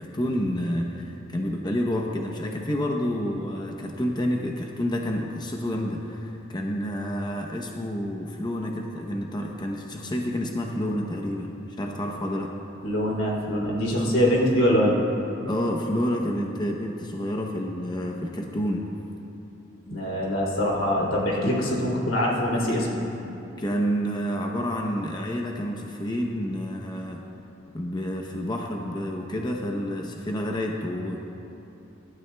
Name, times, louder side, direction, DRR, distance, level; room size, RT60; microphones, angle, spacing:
voice 1, 0.0-12.5 15.5-18.9 23.6-27.2 27.7-31.2, equal, 20° left, 1 dB, 0.8 m, -29 dB
voice 2, 12.8-15.0 19.8-23.0, equal, 85° left, -4 dB, 3.1 m, -23 dB
23.5 x 12.5 x 2.3 m, 2.9 s
head